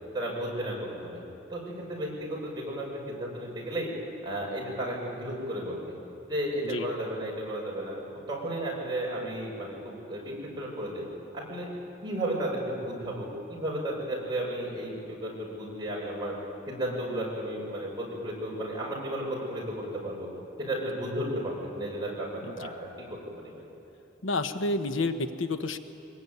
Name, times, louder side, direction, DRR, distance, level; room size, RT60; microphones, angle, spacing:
voice 1, 0.1-1.2 1.5-3.9 4.2-6.0 6.3-8.0 8.3-11.1 11.3-11.7 12.0-16.3 16.7-20.3 20.6-23.6, right 1 dB, 25° right, -3 dB, 6.4 m, -33 dB
voice 2, 24.2-25.8, left 2 dB, 85° left, 8 dB, 1.1 m, -30 dB
24.0 x 21.0 x 9.4 m, 2.8 s
head